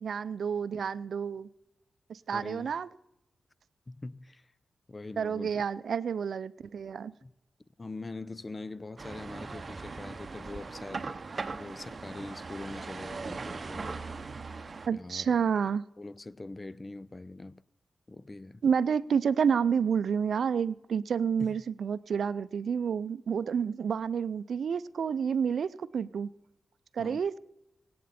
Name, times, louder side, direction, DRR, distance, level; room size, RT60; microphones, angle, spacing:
voice 1, 0.0-1.5 2.1-2.9 5.2-7.1 14.9-15.8 18.6-26.3 26.9-27.3, right 7 dB, 80° right, 0.5 m, -29 dB
voice 2, 2.3-2.7 3.9-4.5 4.9-5.6 7.2-7.3 7.8-14.0 14.9-15.4 16.0-17.6 18.1-18.6 21.4-21.6 27.0-27.2, left 2 dB, 30° left, 0.6 m, -43 dB
sound 1, 9.0-14.9, right 4 dB, 50° right, 0.8 m, -39 dB
25.5 x 8.6 x 4.3 m
cardioid pair, 60°, 0 cm